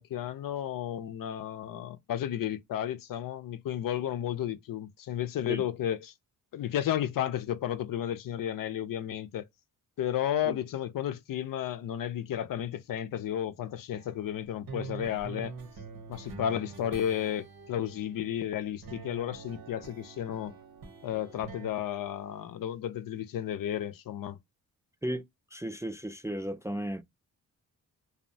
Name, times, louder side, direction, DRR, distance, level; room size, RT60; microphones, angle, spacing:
voice 1, 0.0-6.1 6.5-9.5 10.0-15.5 16.1-20.5 21.0-24.4, left 10 dB, 65° left, 0.5 m, -33 dB
sound 1, 13.9-18.4 18.8-21.7, right 5 dB, 85° right, 1.0 m, -45 dB
voice 2, 25.5-27.0, right 1 dB, 10° right, 0.3 m, -34 dB
2.6 x 2.1 x 2.6 m
cardioid pair, 70°, 36 cm